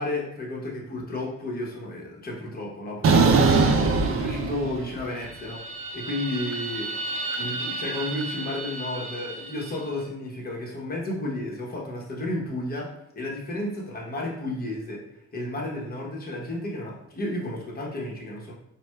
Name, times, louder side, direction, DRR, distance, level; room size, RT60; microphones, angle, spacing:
voice 1, 0.0-3.8 4.0-5.6 5.9-6.9 7.3-15.0 15.3-18.5, left 1 dB, 30° left, -3 dB, 0.9 m, -32 dB
sound 1, 3.0-5.0 5.3-9.6, right 4 dB, 50° right, 0.4 m, -25 dB
4.1 x 2.1 x 2.2 m, 0.80 s
cardioid pair, 90°, 30 cm